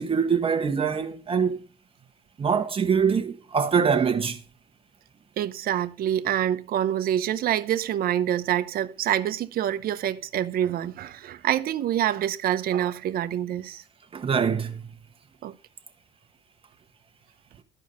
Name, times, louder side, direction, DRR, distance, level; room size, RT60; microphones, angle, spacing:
voice 1, 0.0-1.6 2.4-4.4 14.1-14.8, right 6 dB, 35° right, 1.3 m, -24 dB
voice 2, 5.4-13.8 15.4-15.5, right 11 dB, 60° right, 0.9 m, -26 dB
13.0 x 4.7 x 6.9 m
cardioid pair, 110°, 17 cm